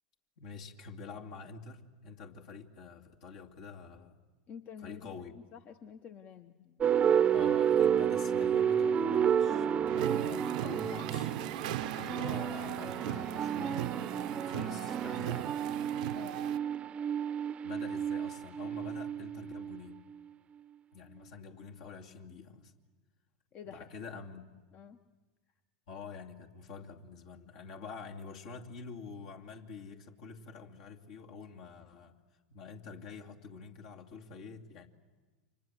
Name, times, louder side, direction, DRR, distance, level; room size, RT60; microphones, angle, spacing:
voice 1, 0.4-4.2 4.8-5.3 7.3-13.9 14.4-15.6 17.6-20.0 20.9-22.7 23.6-24.6 25.9-32.2 32.5-34.9, left 5 dB, 60° left, 2 dB, 2.5 m, -47 dB
voice 2, 4.5-5.2 5.5-7.0 9.9-10.2 16.1-16.5 23.5-23.9 24.7-25.0, left 7 dB, 40° left, 9 dB, 1.0 m, -49 dB
sound 1, 6.8-20.2, right 8 dB, 30° right, 0.8 m, -31 dB
sound 2, 9.9-16.6, right 14 dB, 65° right, 0.8 m, -39 dB
29.5 x 25.0 x 7.7 m, 1.3 s
hypercardioid pair, 90°, 4 cm